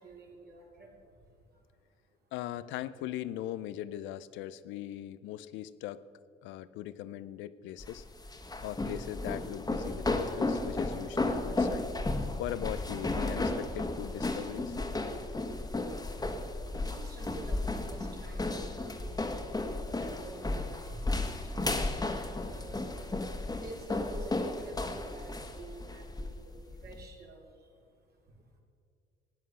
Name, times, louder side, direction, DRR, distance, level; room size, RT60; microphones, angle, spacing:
voice 1, 0.0-1.6 1.9-2.0 15.4-28.6, right 2 dB, 55° right, -1 dB, 3.9 m, -50 dB
voice 2, 2.3-6.1 6.4-8.0 8.6-11.9 12.4-14.9, left 13 dB, 75° left, 16 dB, 0.6 m, -40 dB
sound 1, 7.8-27.0, left 2 dB, 20° left, 1.6 m, -34 dB
17.5 x 9.3 x 6.4 m, 2.2 s
hypercardioid pair, 60°, 20 cm